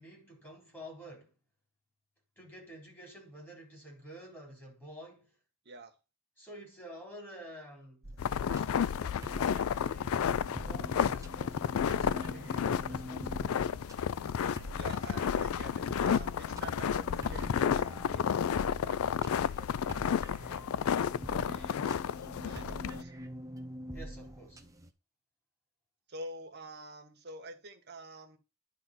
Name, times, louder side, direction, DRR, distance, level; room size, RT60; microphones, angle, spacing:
voice 1, 0.0-1.3 2.4-5.4 6.4-8.1 8.4-13.7 23.9-24.6, equal, 10° left, 3.8 m, -50 dB
voice 2, 5.6-6.0 14.7-21.9 22.4-23.2 26.1-28.4, right 2 dB, 50° right, 1.6 m, -48 dB
sound 1, 8.0-24.9, right 1 dB, 15° right, 0.8 m, -46 dB
sound 2, 8.2-23.0, left 8 dB, 75° left, 0.4 m, -32 dB
10.0 x 4.2 x 5.5 m
head